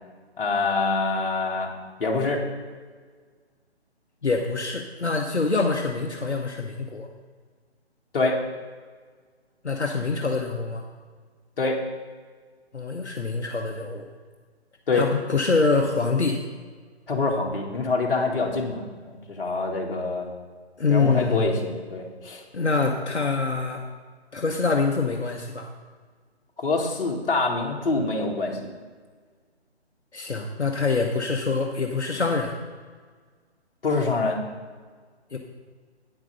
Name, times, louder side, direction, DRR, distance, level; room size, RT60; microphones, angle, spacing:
voice 1, 0.4-1.7 2.0-2.4 8.1-8.4 11.6-11.8 14.9-15.0 17.1-20.3 20.9-22.4 26.6-28.7 33.8-34.4, left 3 dB, 55° left, 0 dB, 2.0 m, -25 dB
voice 2, 4.2-7.1 9.6-10.8 12.7-14.1 14.9-16.4 20.8-21.5 22.5-23.9 24.3-25.7 30.1-32.5 35.3-35.4, left 4 dB, 85° left, 1 dB, 1.1 m, -25 dB
9.1 x 6.0 x 6.8 m, 1.5 s
figure-of-eight pair, 145°, 33 cm